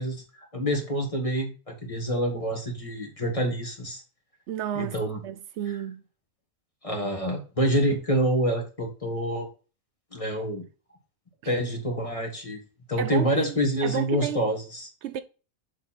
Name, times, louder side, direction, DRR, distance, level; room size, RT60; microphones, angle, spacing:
voice 1, 0.0-4.0 4.8-5.2 6.8-9.5 10.1-10.6 11.5-12.6 12.9-14.9, equal, 30° left, 1.8 m, -27 dB
voice 2, 4.5-4.9 5.2-6.0 11.4-11.5 13.0-14.4 15.0-15.2, right 9 dB, 75° right, 0.8 m, -32 dB
7.3 x 4.4 x 4.2 m
omnidirectional pair, 1.2 m